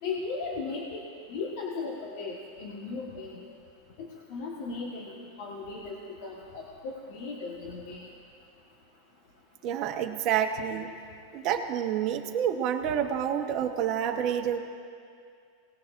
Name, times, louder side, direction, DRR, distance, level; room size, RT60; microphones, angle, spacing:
voice 1, 0.0-1.0 1.3-3.5 4.0-8.1, left 4 dB, 50° left, -2 dB, 1.4 m, -37 dB
voice 2, 9.6-10.9 11.3-14.6, right 9 dB, 35° right, 3 dB, 1.1 m, -28 dB
27.0 x 19.0 x 2.6 m, 2.3 s
supercardioid pair, 170°, 0 cm